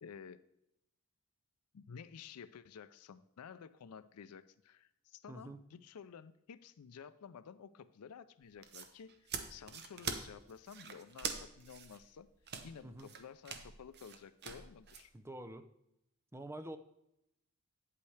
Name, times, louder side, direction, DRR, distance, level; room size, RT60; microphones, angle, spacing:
voice 1, 0.0-0.4 1.7-12.3 12.6-15.1, left 6 dB, 90° left, 14 dB, 0.4 m, -53 dB
voice 2, 5.3-5.6 12.8-13.1 15.1-15.7 16.3-16.8, right 1 dB, 10° right, 9 dB, 0.5 m, -47 dB
sound 1, 8.4-15.1, right 6 dB, 50° right, 0.8 m, -44 dB
9.0 x 8.4 x 3.3 m, 0.82 s
head